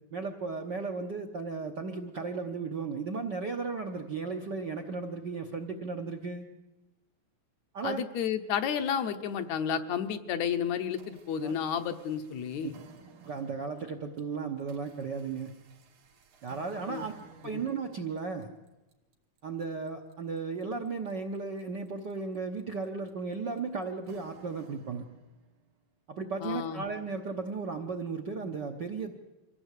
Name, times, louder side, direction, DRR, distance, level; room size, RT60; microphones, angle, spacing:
voice 1, 0.1-6.5 7.7-8.1 11.4-11.6 12.6-12.7 13.2-15.5 16.4-17.1 17.4-18.5 19.4-25.0 26.1-29.2, right 4 dB, 60° right, 3 dB, 1.1 m, -35 dB
voice 2, 7.8-12.7 16.9-17.0 17.5-17.6 26.4-26.8, left 8 dB, 70° left, 8 dB, 2.3 m, -31 dB
sound 1, 9.2-10.2 10.7-25.7, right 6 dB, 85° right, 3.4 m, -57 dB
24.5 x 16.0 x 8.3 m, 1.0 s
omnidirectional pair, 3.4 m